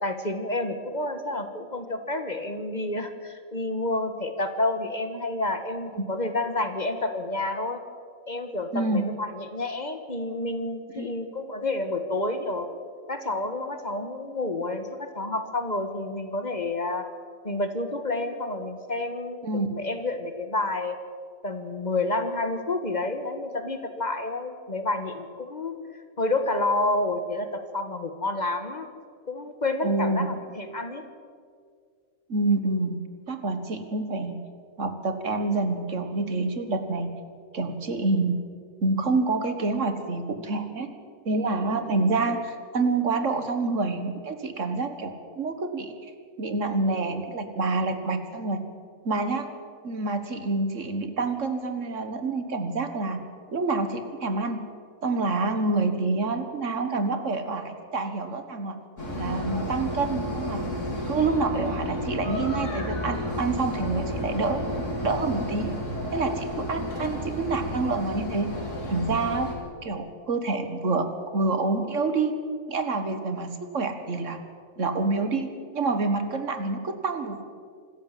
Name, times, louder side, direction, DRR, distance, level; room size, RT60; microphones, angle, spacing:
voice 1, 0.0-7.8 8.3-12.7 13.1-17.1 17.4-21.0 21.4-25.8 26.2-28.9 29.3-31.0, left 2 dB, 35° left, 8 dB, 1.4 m, -29 dB
voice 2, 8.7-9.1 11.0-11.1 19.4-19.7 29.8-30.3 32.3-33.0 33.3-34.4 34.8-37.1 37.5-38.4 38.8-40.9 41.3-45.9 46.4-48.6 49.1-49.5 49.8-53.2 53.5-54.6 55.0-58.8 59.1-60.6 61.1-64.6 65.0-65.7 66.1-68.5 68.9-69.5 69.8-72.3 72.7-74.4 74.8-75.5 75.7-77.4, right 3 dB, 70° right, 8 dB, 1.9 m, -27 dB
sound 1, 59.0-69.5, left 1 dB, 70° left, 4.3 m, -32 dB
26.0 x 13.5 x 7.5 m, 2.1 s
omnidirectional pair, 1.3 m